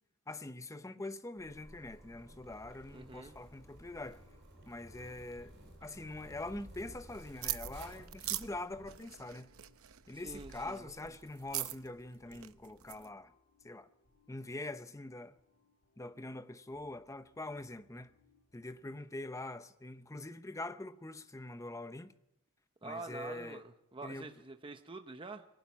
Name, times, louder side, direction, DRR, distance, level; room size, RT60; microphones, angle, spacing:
voice 1, 0.3-4.2 4.7-9.5 10.1-13.3 13.6-13.9 14.3-15.4 16.0-18.1 18.5-22.1 22.8-23.6 24.0-24.3, left 2 dB, 15° left, 0.7 m, -44 dB
Zipper (clothing), 1.4-8.9, right 1 dB, 50° right, 7.5 m, -55 dB
voice 2, 2.9-3.3 10.1-10.9 22.8-23.6 23.9-25.5, right 3 dB, 25° right, 0.8 m, -46 dB
sound 1, 4.1-19.2, left 3 dB, 70° left, 3.3 m, -72 dB
sound 2, 7.4-13.1, right 13 dB, 70° right, 0.7 m, -42 dB
23.0 x 12.0 x 9.5 m
head